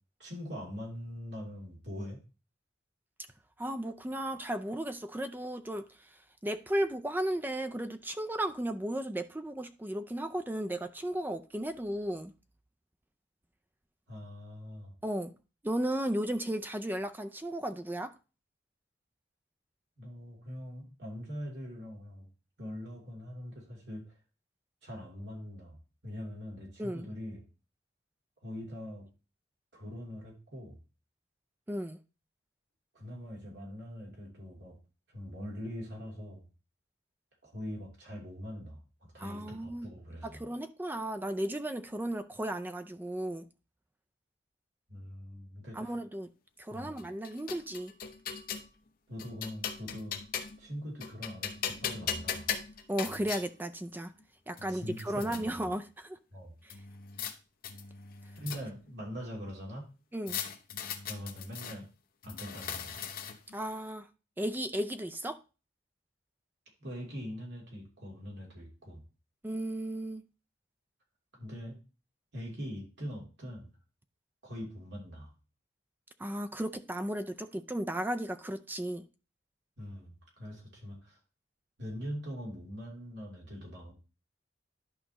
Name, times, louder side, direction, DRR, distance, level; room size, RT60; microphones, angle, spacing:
voice 1, 0.2-2.2 14.1-14.9 20.0-22.3 22.6-24.1 24.8-25.8 26.0-27.4 28.4-29.0 29.7-30.8 32.9-34.7 35.1-36.5 37.4-40.4 44.9-46.0 46.7-47.0 49.1-50.2 50.6-52.5 54.7-55.7 56.3-56.6 58.4-59.9 61.0-61.9 62.2-63.3 66.8-69.0 71.3-71.8 72.3-73.7 74.4-75.3 79.8-81.2 81.8-83.9, equal, 65° right, 3.0 m, -42 dB
voice 2, 3.6-6.1 6.4-12.3 15.0-15.3 15.6-18.1 26.8-27.1 31.7-32.0 39.2-39.9 40.2-43.4 45.7-46.3 46.6-47.9 52.9-54.1 54.5-56.2 56.6-56.7 60.1-60.4 63.5-64.1 64.4-65.4 69.4-70.2 76.2-79.0, right 1 dB, 10° right, 0.4 m, -35 dB
sound 1, 47.0-48.7 49.2-50.7 51.0-53.4 54.2-54.3 54.6-55.4 56.7-57.3 57.6-58.9 60.3-61.8 62.2-63.6, left 7 dB, 50° left, 0.8 m, -39 dB
11.0 x 5.2 x 3.0 m
head